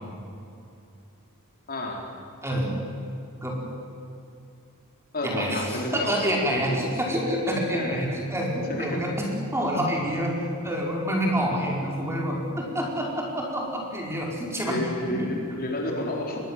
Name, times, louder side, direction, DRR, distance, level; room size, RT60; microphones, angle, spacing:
voice 1, 1.7-2.0 5.1-6.1 6.5-6.7 7.7-8.0 8.7-9.0 14.7-16.4, left 1 dB, 45° left, 0 dB, 4.1 m, -30 dB
voice 2, 5.2-9.3 9.5-10.3 10.6-15.3, equal, 10° right, -2 dB, 4.8 m, -27 dB
24.5 x 21.5 x 7.6 m, 2.7 s
head